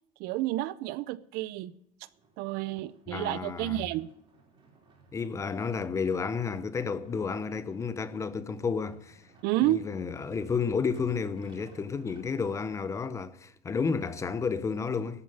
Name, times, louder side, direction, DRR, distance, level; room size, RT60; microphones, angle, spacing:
voice 1, 0.2-1.7 2.4-4.1 9.4-9.8, right 15 dB, 60° right, 0.6 m, -30 dB
sound 1, 2.1-13.1 13.7-13.8, right 3 dB, 25° right, 3.5 m, -60 dB
voice 2, 3.1-3.8 5.1-9.2 9.6-15.2, left 5 dB, 15° left, 0.7 m, -31 dB
13.0 x 7.5 x 7.8 m
cardioid pair, 170°, 19 cm